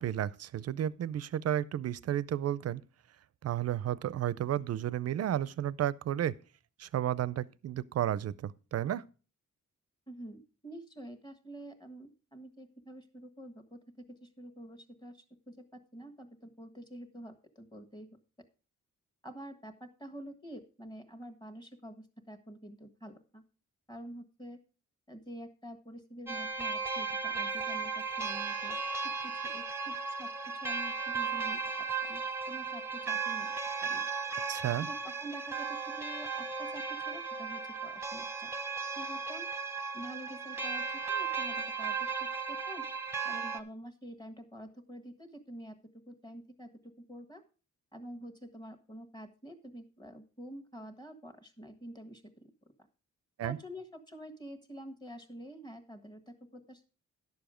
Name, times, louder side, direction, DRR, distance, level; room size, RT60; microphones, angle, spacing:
voice 1, 0.0-2.8 3.4-6.3 6.8-9.0 34.5-34.9 53.4-53.6, right 11 dB, 55° right, 0.5 m, -32 dB
voice 2, 10.1-15.6 15.9-18.1 19.2-23.4 23.9-24.6 25.1-28.8 29.0-31.6 32.0-32.2 32.5-33.5 33.8-34.1 34.8-38.5 38.9-39.5 39.9-42.9 43.2-47.4 47.9-52.5 53.4-56.9, right 1 dB, 15° left, 1.4 m, -47 dB
sound 1, 26.3-43.6, right 5 dB, 10° right, 0.9 m, -36 dB
11.0 x 7.0 x 5.0 m
wide cardioid pair, 130°, 31 cm